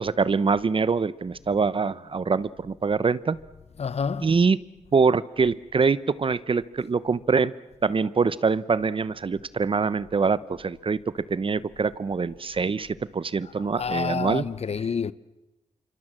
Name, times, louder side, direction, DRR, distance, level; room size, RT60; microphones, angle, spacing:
voice 1, 0.0-3.4 4.2-4.6 4.9-7.5 7.8-14.4, right 5 dB, 45° right, 0.8 m, -24 dB
voice 2, 3.8-4.3 13.8-15.1, left 6 dB, 60° left, 0.8 m, -28 dB
28.0 x 25.0 x 7.6 m
cardioid pair, 85°, 12 cm